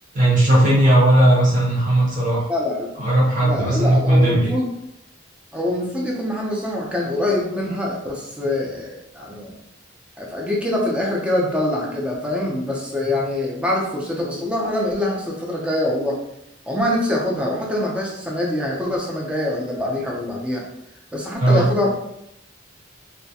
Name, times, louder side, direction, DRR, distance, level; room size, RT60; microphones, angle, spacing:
voice 1, 0.1-2.4 3.0-4.5 21.4-21.7, right 1 dB, 40° right, -7 dB, 0.7 m, -16 dB
voice 2, 2.5-2.9 3.4-4.7 5.5-9.5 10.2-16.2 16.7-20.6 21.1-21.9, left 1 dB, 5° right, -3 dB, 0.5 m, -24 dB
2.3 x 2.1 x 2.7 m, 0.82 s
head